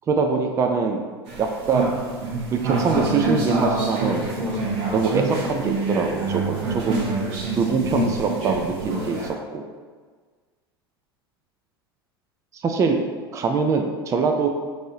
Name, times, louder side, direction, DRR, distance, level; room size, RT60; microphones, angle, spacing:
voice 1, 0.1-1.0 1.4-1.9 2.5-4.3 4.9-7.0 7.5-9.6 12.5-13.0 13.3-14.5, right 4 dB, 25° right, 4 dB, 0.4 m, -23 dB
sound 1, 1.3-9.3, right 2 dB, 55° right, 0.9 m, -26 dB
4.6 x 2.6 x 2.7 m, 1.5 s
hypercardioid pair, 80°, 13 cm